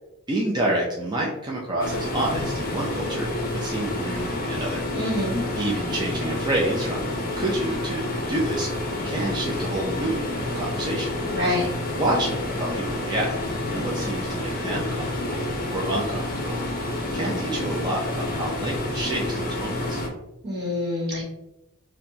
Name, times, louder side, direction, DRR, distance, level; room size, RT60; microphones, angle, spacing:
voice 1, 0.3-3.3 3.5-4.8 5.6-7.1 7.4-8.7 9.0-11.1 11.9-13.4 13.7-15.4 15.7-16.6 17.1-20.0, right 1 dB, 20° right, -3 dB, 0.4 m, -28 dB
sound 1, 1.8-20.1, left 1 dB, 40° left, 0.6 m, -29 dB
voice 2, 4.9-5.4 11.3-11.7 20.4-21.2, left 1 dB, 50° right, -3 dB, 1.1 m, -26 dB
4.2 x 2.2 x 2.7 m, 0.91 s
head